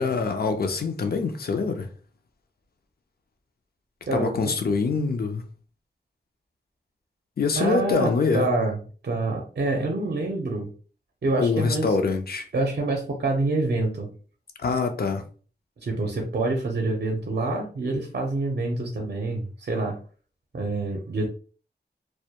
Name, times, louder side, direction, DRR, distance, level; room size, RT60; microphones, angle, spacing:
voice 1, 0.0-1.9 4.1-5.4 7.4-8.5 11.4-12.5 14.6-15.2, left 4 dB, 60° left, 0.4 m, -24 dB
voice 2, 4.1-4.6 7.6-8.8 9.0-10.7 11.2-11.9 12.5-14.1 15.8-20.0 20.5-21.3, right 2 dB, 70° right, 0.5 m, -26 dB
2.1 x 2.1 x 2.8 m
wide cardioid pair, 90°, 18 cm